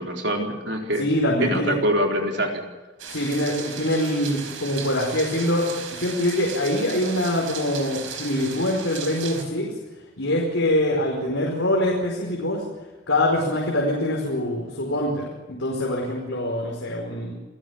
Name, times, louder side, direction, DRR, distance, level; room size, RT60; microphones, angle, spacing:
voice 1, 0.0-1.0 1.4-2.6, equal, 60° right, 2 dB, 4.1 m, -24 dB
voice 2, 1.0-1.7 3.1-9.7 10.2-12.6 13.1-17.3, left 1 dB, 80° left, -1 dB, 4.9 m, -24 dB
sound 1, 3.0-9.4, right 6 dB, 90° right, 4.6 m, -36 dB
28.5 x 17.0 x 7.3 m, 1.2 s
head